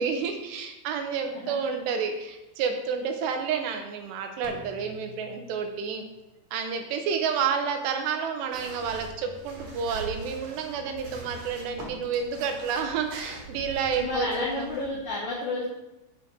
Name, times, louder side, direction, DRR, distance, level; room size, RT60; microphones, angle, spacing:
voice 1, 0.0-6.1 6.5-14.7, right 6 dB, 85° right, 5 dB, 3.1 m, -30 dB
voice 2, 1.3-1.7 14.0-15.7, left 2 dB, 50° left, -7 dB, 2.8 m, -31 dB
Drum, 4.4-6.4, right 1 dB, 90° left, 1.3 m, -48 dB
sound 1, 8.5-15.1, right 2 dB, 50° right, 2.5 m, -43 dB
10.5 x 5.1 x 5.1 m, 0.95 s
omnidirectional pair, 5.0 m